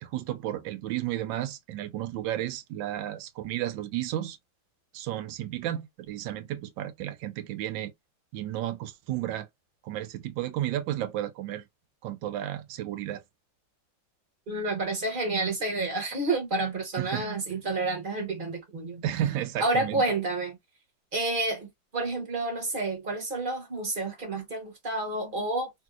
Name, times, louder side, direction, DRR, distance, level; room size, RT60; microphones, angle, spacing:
voice 1, 0.0-4.4 4.9-7.9 8.3-9.5 9.8-11.7 12.0-13.2 17.0-17.3 19.0-19.9, right 12 dB, 85° right, 1.3 m, -32 dB
voice 2, 14.5-19.0 19.6-20.6 21.1-25.7, right 2 dB, 35° right, 1.0 m, -29 dB
3.0 x 2.7 x 2.3 m
omnidirectional pair, 2.0 m